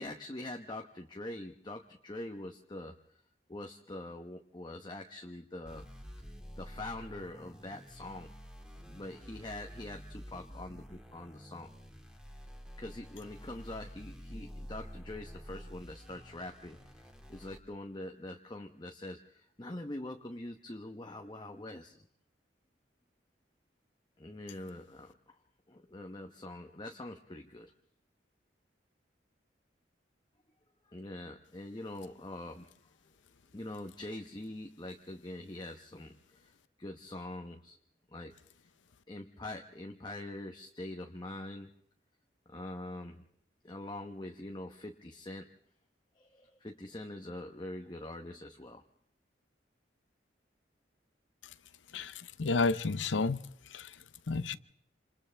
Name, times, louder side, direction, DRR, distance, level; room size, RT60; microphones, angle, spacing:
voice 1, 0.0-2.9 3.5-5.9 6.6-8.3 8.8-11.7 12.8-22.0 24.2-25.4 25.7-27.7 30.9-32.7 33.5-36.5 36.8-37.8 38.1-38.3 39.1-41.7 42.5-43.2 43.6-45.5 46.2-48.8, left 1 dB, 25° left, 1.0 m, -44 dB
sound 1, 5.7-17.6, equal, 5° right, 2.0 m, -49 dB
voice 2, 52.4-53.4 53.7-53.9 54.3-54.6, left 3 dB, 85° left, 0.7 m, -30 dB
28.0 x 27.5 x 3.4 m
head